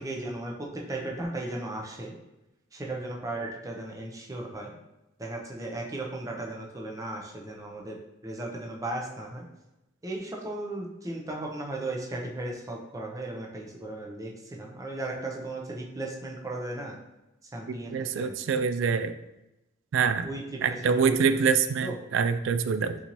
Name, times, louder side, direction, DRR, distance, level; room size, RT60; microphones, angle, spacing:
voice 1, 0.0-2.1 2.7-4.7 5.2-8.0 8.2-9.4 10.0-16.9 17.5-18.3 20.2-20.4 20.7-21.5 21.8-22.0, right 2 dB, 15° right, -1 dB, 0.6 m, -36 dB
voice 2, 17.7-19.1 19.9-20.3 20.6-23.0, right 6 dB, 65° right, 11 dB, 0.3 m, -25 dB
4.3 x 3.9 x 3.0 m, 0.95 s
head